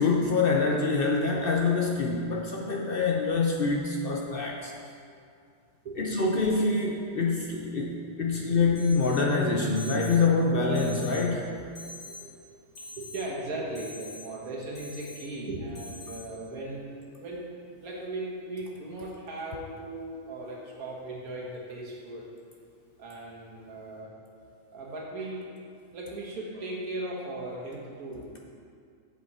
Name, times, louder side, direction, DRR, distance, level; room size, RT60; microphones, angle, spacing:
voice 1, 0.0-4.7 6.0-11.5, left 4 dB, 55° left, 0 dB, 0.7 m, -25 dB
Alarm, 8.8-9.2 9.8-10.2 10.8-11.2 11.8-12.2 12.8-13.2 13.8-14.2 14.8-15.2 15.8-16.2, left 2 dB, 75° left, 2.3 m, -44 dB
voice 2, 12.0-12.4 12.8-17.5 17.8-22.2 23.0-24.1 24.7-25.5 25.9-28.4, right 2 dB, 85° right, -3 dB, 1.9 m, -38 dB
7.4 x 7.3 x 4.3 m, 2.3 s
omnidirectional pair, 1.5 m